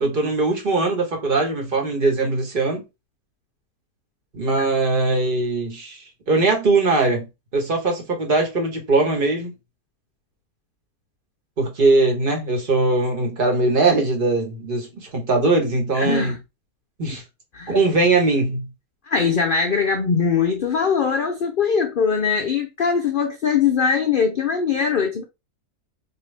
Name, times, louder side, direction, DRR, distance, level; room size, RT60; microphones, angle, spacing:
voice 1, 0.0-2.8 4.3-7.3 7.5-9.5 11.6-16.3 17.0-17.2 17.7-18.7, right 3 dB, 40° right, 1.2 m, -20 dB
voice 2, 15.9-16.4 17.5-17.8 19.1-25.2, left 6 dB, 85° left, 0.4 m, -21 dB
4.4 x 2.5 x 3.2 m
omnidirectional pair, 1.7 m